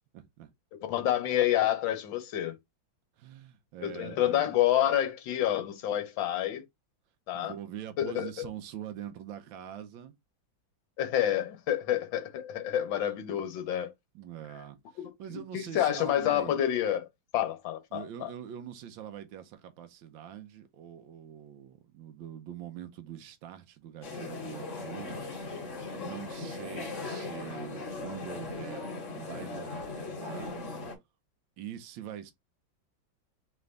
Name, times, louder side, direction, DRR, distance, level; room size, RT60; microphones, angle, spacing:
voice 1, 0.1-0.5 3.2-4.5 7.3-10.1 14.1-16.6 17.9-25.2 25.6-30.5 31.6-32.3, right 10 dB, 75° right, 1.4 m, -44 dB
voice 2, 0.7-2.6 3.8-6.6 7.3-7.5 8.0-8.5 11.0-13.9 15.0-17.1 17.3-18.3, left 11 dB, 75° left, 1.5 m, -28 dB
sound 1, 24.0-31.0, left 3 dB, 40° left, 1.6 m, -38 dB
3.8 x 3.4 x 3.3 m
omnidirectional pair, 2.2 m